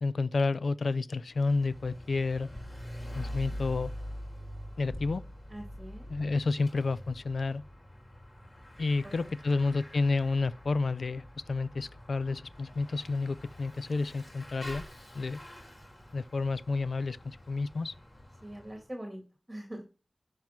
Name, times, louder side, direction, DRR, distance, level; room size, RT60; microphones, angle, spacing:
voice 1, 0.0-2.5 3.1-3.9 4.8-5.2 6.1-7.6 8.8-14.8 15.1-15.4 16.1-17.9, left 3 dB, 85° left, 0.4 m, -30 dB
Bicycle / Mechanisms, 1.2-18.8, equal, 40° left, 4.2 m, -45 dB
voice 2, 5.5-6.1 9.0-9.3 18.4-19.2 19.5-19.8, right 1 dB, 20° right, 2.4 m, -43 dB
12.0 x 4.7 x 6.0 m
wide cardioid pair, 60°, 0 cm